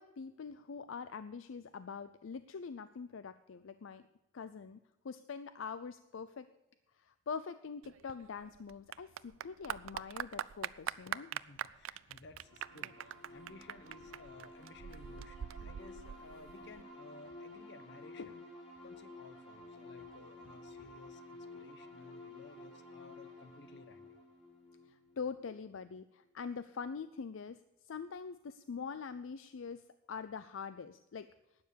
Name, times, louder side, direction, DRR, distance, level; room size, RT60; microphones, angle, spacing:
voice 1, 0.0-4.0 4.3-4.8 5.0-6.5 7.0-11.3 18.2-18.3 24.9-27.6 27.8-29.8 30.1-31.3, left 5 dB, 80° left, 13 dB, 0.5 m, -44 dB
Clapping / Applause, 7.8-16.8, right 9 dB, 85° right, 0.4 m, -43 dB
voice 2, 11.3-18.4 18.8-24.2, left 2 dB, 60° left, 11 dB, 1.0 m, -57 dB
sound 1, 12.4-25.9, left 2 dB, 30° left, 4.6 m, -52 dB
12.5 x 8.9 x 6.9 m, 0.97 s
head